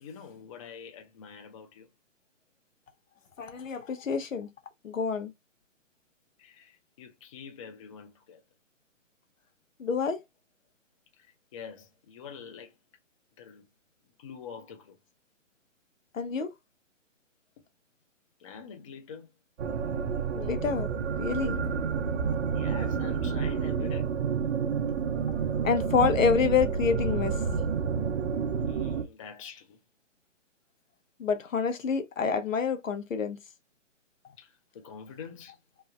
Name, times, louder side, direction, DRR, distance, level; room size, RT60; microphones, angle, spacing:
voice 1, 0.0-1.9 6.4-8.4 11.2-12.8 13.4-13.7 14.2-15.0 18.4-19.3 22.5-24.2 28.6-29.8 34.4-35.6, left 6 dB, 25° left, 0.5 m, -46 dB
voice 2, 3.4-4.5 4.8-5.3 9.8-10.2 16.1-16.5 20.3-20.9 21.2-21.6 25.6-27.4 31.2-33.4, left 6 dB, 85° left, 0.8 m, -27 dB
sound 1, 19.6-29.0, right 6 dB, 65° right, 0.7 m, -29 dB
3.2 x 2.0 x 3.4 m
hypercardioid pair, 145°, 38 cm